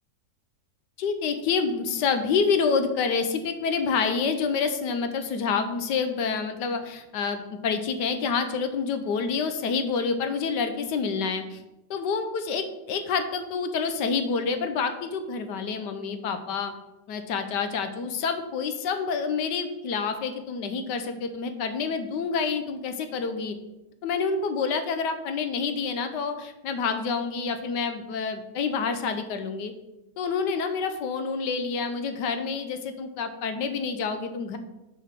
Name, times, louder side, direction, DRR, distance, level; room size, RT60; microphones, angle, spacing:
voice 1, 1.0-11.6 11.9-16.7 17.1-23.6 24.0-29.7 30.2-34.6, left 5 dB, 75° left, 8 dB, 1.3 m, -28 dB
6.7 x 4.8 x 5.8 m, 0.97 s
omnidirectional pair, 1.9 m